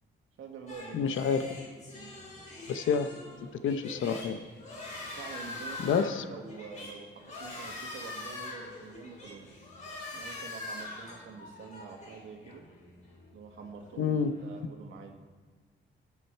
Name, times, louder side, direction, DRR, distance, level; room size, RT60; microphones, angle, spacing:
voice 1, 0.4-1.2 1.9-2.2 5.2-9.6 10.1-12.7 13.3-15.2, right 5 dB, 75° right, 3 dB, 2.0 m, -47 dB
sound 1, 0.7-14.6, left 2 dB, 35° left, 5.0 m, -44 dB
voice 2, 0.9-1.6 2.7-3.1 3.6-4.4 5.8-6.2 14.0-14.4, left 6 dB, 75° left, 10 dB, 1.0 m, -28 dB
25.5 x 8.7 x 4.6 m, 1.4 s
wide cardioid pair, 160°, 20 cm